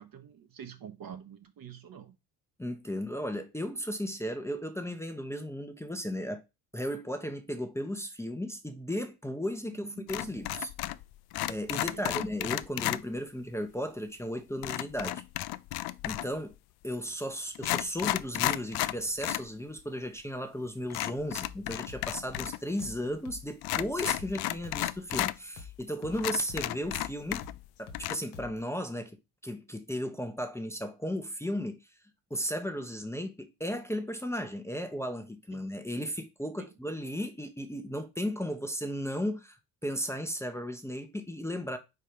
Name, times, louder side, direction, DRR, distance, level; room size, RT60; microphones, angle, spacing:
voice 1, 0.0-2.1 9.7-10.4 11.8-12.1 35.5-35.7 36.6-36.7, right 8 dB, 50° right, 1.4 m, -47 dB
voice 2, 2.6-6.4 6.7-10.7 11.5-15.2 16.0-16.6 16.8-27.4 27.8-31.8 32.3-41.8, equal, 5° left, 1.0 m, -35 dB
sound 1, 10.1-11.0 11.3-13.0 14.6-16.4 17.1-17.2 17.5-19.5 19.8-19.9 20.9-22.6 22.8-22.9 23.6-25.3 25.8-25.9 26.2-27.7 27.9-28.1, left 16 dB, 55° left, 0.5 m, -33 dB
sound 2, 21.4-28.6, left 6 dB, 75° left, 1.3 m, -48 dB
4.6 x 4.5 x 5.1 m
hypercardioid pair, 60°, 46 cm